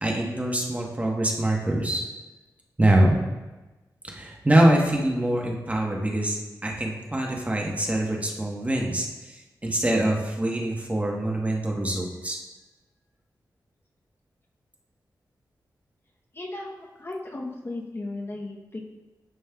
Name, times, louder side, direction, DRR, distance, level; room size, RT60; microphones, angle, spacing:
voice 1, 0.0-2.0 2.8-3.2 4.1-9.4 9.6-12.4, right 1 dB, 20° right, -1 dB, 1.1 m, -24 dB
voice 2, 16.3-18.9, left 2 dB, 35° left, 0 dB, 0.8 m, -36 dB
11.0 x 5.3 x 2.3 m, 1.1 s
cardioid pair, 75°, 7 cm